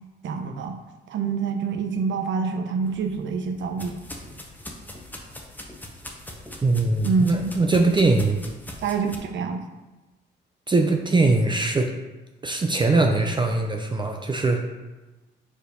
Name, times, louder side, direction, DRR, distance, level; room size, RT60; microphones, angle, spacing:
voice 1, 0.2-0.8 1.1-4.0 7.0-7.6 8.8-9.6, right 5 dB, 70° right, 5 dB, 0.8 m, -26 dB
sound 1, 2.8-9.2, left 1 dB, 10° left, 1.0 m, -41 dB
voice 2, 6.6-8.4 10.7-11.9 12.4-14.6, right 3 dB, 25° right, 3 dB, 0.6 m, -21 dB
4.9 x 4.5 x 5.2 m, 1.1 s
cardioid pair, 90°, 20 cm